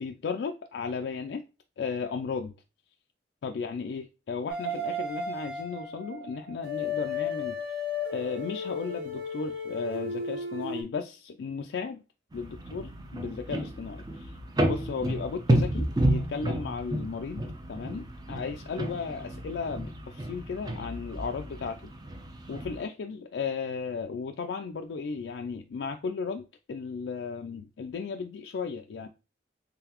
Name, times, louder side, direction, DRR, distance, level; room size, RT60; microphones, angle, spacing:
voice 1, 0.0-1.4 1.8-2.5 3.4-7.8 8.1-12.0 12.3-17.4 17.7-21.9 22.5-29.1, left 5 dB, 80° left, 0.3 m, -35 dB
sound 1, 4.5-10.8, left 3 dB, 75° right, 1.5 m, -34 dB
sound 2, 12.3-22.8, right 1 dB, 20° right, 0.4 m, -31 dB
3.9 x 3.3 x 2.9 m
head